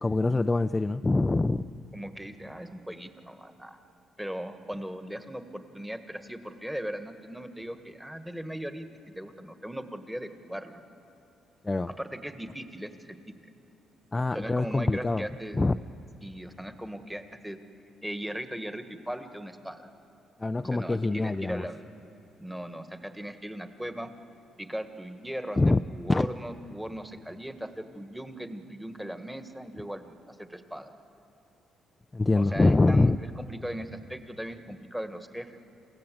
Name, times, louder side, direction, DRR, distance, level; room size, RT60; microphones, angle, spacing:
voice 1, 0.0-1.7 11.6-11.9 14.1-15.2 15.5-15.8 20.4-21.7 25.6-25.8 26.1-26.3 32.1-33.2, left 2 dB, 20° left, 9 dB, 0.5 m, -24 dB
voice 2, 1.9-3.8 4.2-10.8 11.9-13.1 14.3-15.6 16.2-17.6 18.0-19.9 20.7-21.8 22.4-24.1 24.6-30.9 32.3-35.8, equal, 5° right, 8 dB, 1.6 m, -38 dB
28.0 x 16.0 x 7.8 m, 2.7 s
cardioid pair, 90°, 0 cm